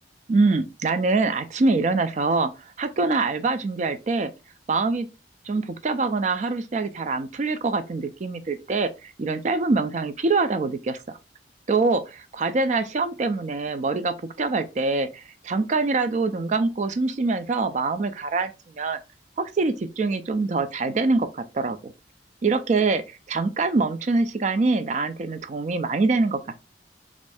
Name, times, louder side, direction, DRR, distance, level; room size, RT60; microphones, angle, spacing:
voice 1, 0.3-2.5 2.8-4.3 4.7-5.1 5.5-11.2 11.7-19.0 19.4-21.9 22.4-26.4, right 3 dB, 40° right, 0.4 m, -24 dB
3.1 x 2.6 x 3.3 m
head